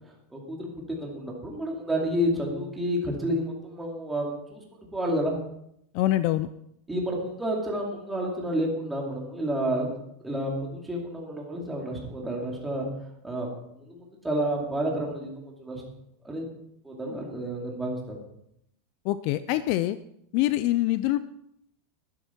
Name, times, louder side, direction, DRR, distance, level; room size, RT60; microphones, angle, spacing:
voice 1, 0.3-4.6 4.9-5.4 6.9-9.9 10.2-12.9 13.2-13.5 13.8-15.3 15.6-15.8 16.2-16.4 16.8-18.2, equal, 5° right, -2 dB, 2.5 m, -30 dB
voice 2, 5.9-6.5 19.0-20.0 20.3-21.2, left 15 dB, 45° left, 14 dB, 0.4 m, -24 dB
12.0 x 11.5 x 4.4 m, 0.75 s
supercardioid pair, 170°, 0 cm